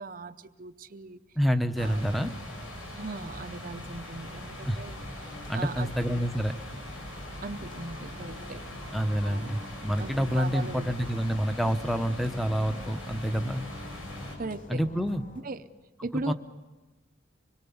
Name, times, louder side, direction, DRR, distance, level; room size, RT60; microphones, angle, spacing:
voice 1, 0.0-1.2 1.8-2.4 3.0-5.0 5.2-6.2 7.4-8.6 9.2-9.5 10.0-10.9 14.4-14.8 15.4-15.7 16.0-16.3, right 3 dB, 40° right, 10 dB, 0.7 m, -39 dB
voice 2, 1.4-2.3 4.6-4.8 5.5-6.5 8.9-13.6 14.7-15.2 16.3-16.4, equal, ahead, 9 dB, 0.9 m, -28 dB
sound 1, 1.8-14.4, left 1 dB, 80° left, 6.5 m, -41 dB
sound 2, 4.9-15.4, left 1 dB, 40° left, 5.6 m, -48 dB
25.5 x 21.5 x 7.1 m, 1.2 s
head